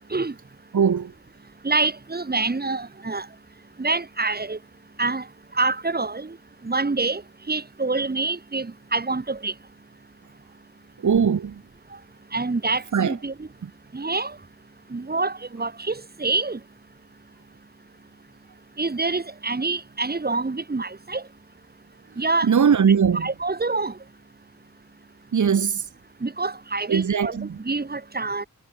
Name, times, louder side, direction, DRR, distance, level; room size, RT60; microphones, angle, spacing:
voice 1, 0.7-1.1 11.0-11.6 12.9-13.2 22.4-23.3 25.3-25.8 26.9-27.6, right 7 dB, 65° right, 1.9 m, -20 dB
voice 2, 1.6-3.3 3.8-4.6 5.0-5.2 5.6-6.3 6.6-7.2 7.5-9.5 12.3-13.3 13.9-14.3 14.9-16.6 18.8-21.2 22.2-22.5 23.2-23.9 26.2-28.5, right 3 dB, 30° right, 3.6 m, -26 dB
wide cardioid pair, 140°, 32 cm